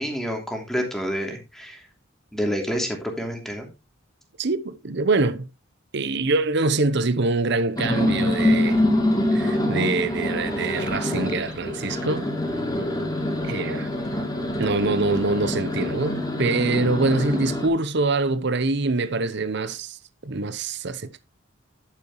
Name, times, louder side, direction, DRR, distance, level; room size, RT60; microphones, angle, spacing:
voice 1, 0.0-1.8 2.3-3.7, equal, ahead, 2.9 m, -28 dB
voice 2, 4.4-5.5 5.9-8.8 9.3-12.3 13.4-13.9 14.6-21.3, right 3 dB, 60° right, 0.8 m, -24 dB
sound 1, 7.8-17.7, left 1 dB, 20° left, 3.1 m, -25 dB
11.0 x 9.3 x 3.1 m
head